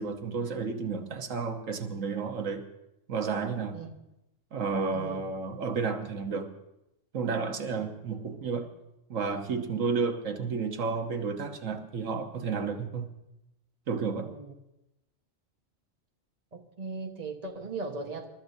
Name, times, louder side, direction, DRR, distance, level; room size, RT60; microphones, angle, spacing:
voice 1, 0.0-2.7 3.1-3.8 4.5-6.5 7.1-8.7 9.1-13.1 13.9-14.3, right 5 dB, 90° right, 1.5 m, -31 dB
voice 2, 4.9-5.2 7.8-7.9 14.2-14.5 16.5-18.3, right 3 dB, 30° right, 1.3 m, -38 dB
28.5 x 13.0 x 2.7 m
omnidirectional pair, 1.3 m